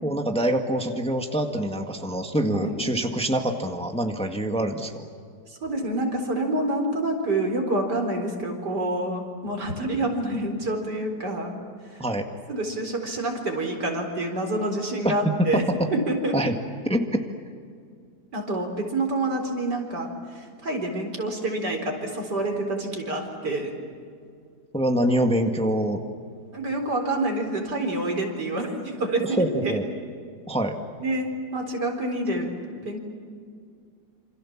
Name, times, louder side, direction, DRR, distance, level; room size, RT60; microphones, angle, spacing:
voice 1, 0.0-5.0 12.0-12.2 15.0-15.6 16.3-16.5 16.8-17.2 24.7-26.0 29.2-29.8 30.5-30.8, right 1 dB, 5° left, 4 dB, 1.7 m, -25 dB
voice 2, 2.5-2.8 5.5-11.5 12.5-15.6 15.9-16.3 18.3-23.7 26.5-29.8 31.0-32.5 32.8-33.0, right 2 dB, 80° right, 3 dB, 4.8 m, -27 dB
27.5 x 27.0 x 7.4 m, 2.2 s
omnidirectional pair, 1.8 m